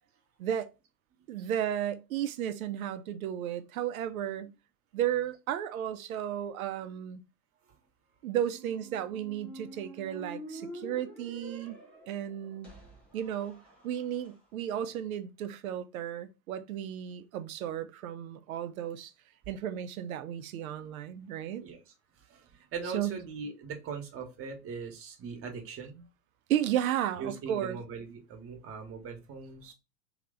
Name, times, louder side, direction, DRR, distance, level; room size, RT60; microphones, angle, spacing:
voice 1, 1.3-4.5 4.9-7.2 8.2-11.8 12.1-12.7 13.1-19.1 19.5-21.6 22.9-23.1 26.5-27.8, right 10 dB, 60° right, 0.6 m, -34 dB
Squeak, 8.3-14.3, right 1 dB, 5° left, 0.3 m, -47 dB
voice 2, 22.2-26.1 27.2-29.7, right 5 dB, 30° right, 1.1 m, -41 dB
3.2 x 2.9 x 3.7 m
hypercardioid pair, 100°, 48 cm